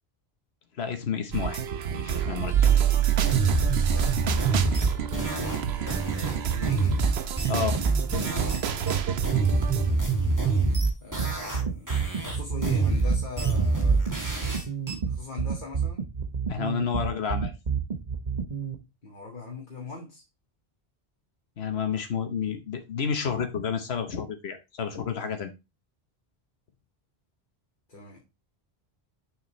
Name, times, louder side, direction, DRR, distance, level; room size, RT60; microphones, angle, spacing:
voice 1, 0.8-1.6 1.9-2.7 7.5-7.8 16.5-17.5 21.6-25.5, left 6 dB, 85° left, 1.3 m, -30 dB
sound 1, 1.3-9.9, right 9 dB, 85° right, 1.0 m, -27 dB
sound 2, 3.2-8.6 8.9-11.6 11.9-14.9, right 3 dB, 20° right, 2.2 m, -26 dB
voice 2, 3.9-4.8 5.8-7.0 9.8-10.0 11.0-11.9 12.2-14.1 15.1-16.0 19.0-20.2 27.9-28.2, left 4 dB, 50° left, 1.9 m, -41 dB
sound 3, 11.2-18.8, right 6 dB, 45° right, 1.1 m, -29 dB
6.7 x 6.6 x 3.1 m
omnidirectional pair, 1.0 m